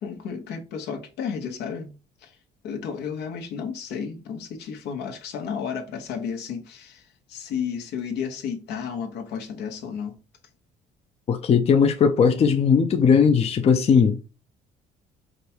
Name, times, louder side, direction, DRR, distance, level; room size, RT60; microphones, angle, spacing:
voice 1, 0.0-1.9 2.2-2.3 2.6-7.0 7.3-10.1, left 7 dB, 80° left, 1.1 m, -32 dB
voice 2, 11.3-14.2, left 6 dB, 35° left, 0.5 m, -18 dB
5.0 x 2.3 x 4.3 m
cardioid pair, 110°, 17 cm